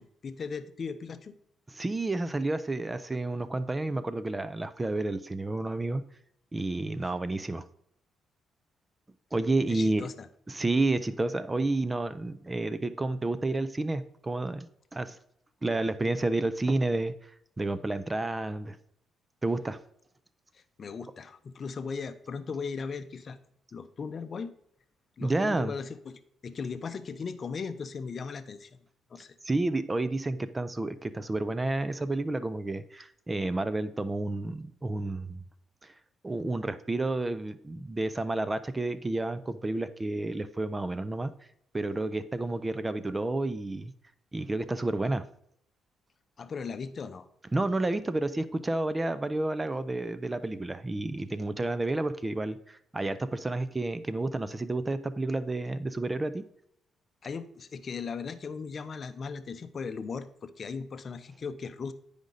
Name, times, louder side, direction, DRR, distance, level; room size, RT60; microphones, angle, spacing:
voice 1, 0.0-1.3 9.7-10.3 20.5-23.4 23.7-24.5 25.2-28.8 29.1-29.3 46.4-47.3 57.2-61.9, left 5 dB, 45° left, 11 dB, 0.6 m, -38 dB
voice 2, 1.7-6.0 6.5-7.7 9.3-10.0 10.5-15.2 15.6-17.3 17.6-18.8 19.4-19.8 25.2-25.7 29.4-35.4 35.8-35.9 36.2-41.3 41.7-43.9 44.3-45.2 47.5-56.4, right 2 dB, 20° right, 14 dB, 0.5 m, -30 dB
9.5 x 5.1 x 3.9 m, 0.69 s
cardioid pair, 90°, 0 cm